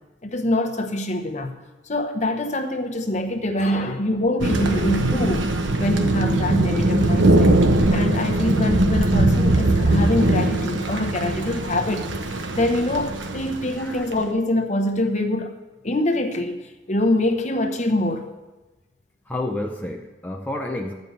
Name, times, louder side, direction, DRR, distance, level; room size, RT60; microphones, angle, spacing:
voice 1, 0.2-1.5 1.9-5.5 5.8-7.5 7.9-12.1 12.5-15.5 15.8-18.3, left 1 dB, 40° left, 5 dB, 0.9 m, -24 dB
Thunder, 4.4-14.1, right 1 dB, 80° right, 1.0 m, -20 dB
voice 2, 19.3-20.9, left 1 dB, 10° left, 2 dB, 0.5 m, -30 dB
11.0 x 5.3 x 8.0 m, 1.1 s
head